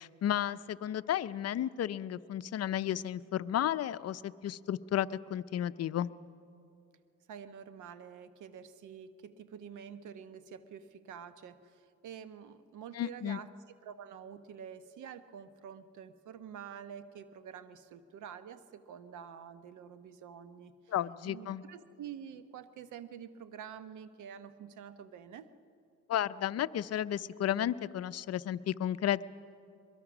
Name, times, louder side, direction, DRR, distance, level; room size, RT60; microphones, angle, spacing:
voice 1, 0.0-6.1 12.9-13.4 20.9-21.6 26.1-29.2, left 11 dB, 55° left, 15 dB, 0.6 m, -33 dB
voice 2, 7.3-13.5 13.8-20.9 21.2-25.5, right 8 dB, 80° right, 12 dB, 1.0 m, -48 dB
22.5 x 22.0 x 6.1 m, 2.4 s
cardioid pair, 90°, 30 cm